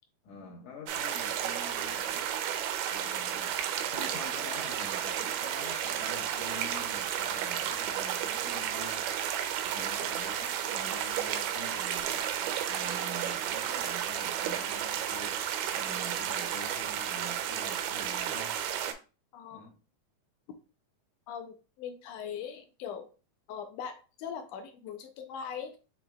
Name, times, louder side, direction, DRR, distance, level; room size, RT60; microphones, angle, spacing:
voice 1, 0.2-2.3 2.9-3.6 3.9-9.2 9.6-12.3 12.7-18.6 19.5-19.8, left 2 dB, 70° left, 2.1 m, -47 dB
sound 1, 0.9-18.9, right 10 dB, 80° right, 2.1 m, -32 dB
voice 2, 19.3-19.7 21.3-23.1 23.5-25.8, left 7 dB, 90° left, 1.4 m, -41 dB
6.9 x 3.3 x 2.3 m
omnidirectional pair, 3.8 m